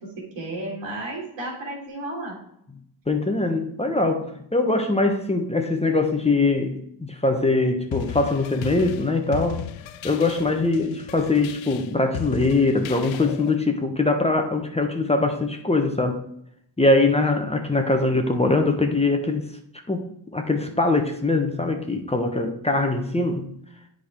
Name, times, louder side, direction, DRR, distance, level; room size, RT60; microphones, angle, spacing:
voice 1, 0.0-2.4, right 2 dB, 80° right, -2 dB, 2.8 m, -33 dB
voice 2, 3.1-9.6 10.0-16.2 16.8-19.5 19.9-20.0 20.3-23.5, left 2 dB, 15° left, 4 dB, 1.0 m, -22 dB
sound 1, 7.9-13.6, left 11 dB, 85° left, 0.6 m, -35 dB
8.4 x 5.0 x 3.7 m, 0.73 s
cardioid pair, 65°, 45 cm